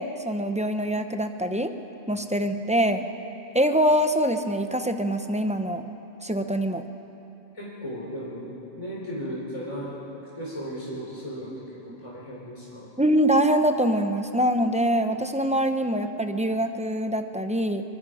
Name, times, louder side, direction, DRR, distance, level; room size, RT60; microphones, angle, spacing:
voice 1, 0.0-1.7 2.1-3.1 3.5-5.8 6.2-6.8 11.9-12.0 13.0-17.8, equal, 5° right, 7 dB, 0.8 m, -24 dB
voice 2, 7.5-8.4 8.8-10.0 10.4-12.9, equal, 30° left, -6 dB, 3.8 m, -36 dB
24.0 x 23.5 x 5.0 m, 3.0 s
omnidirectional pair, 1.1 m